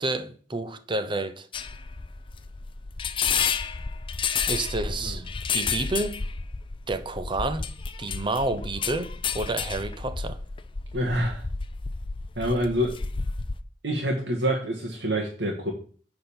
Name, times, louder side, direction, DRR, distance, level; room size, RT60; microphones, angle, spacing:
voice 1, 0.0-1.5 4.5-5.2 5.5-6.2 6.9-7.7 8.0-10.4, right 2 dB, 30° right, 0.8 m, -29 dB
sound 1, 1.5-13.6, left 5 dB, 30° left, 0.5 m, -31 dB
voice 2, 10.9-11.4 12.4-13.0 13.8-15.7, equal, 75° right, 1.6 m, -26 dB
10.0 x 4.0 x 7.0 m
head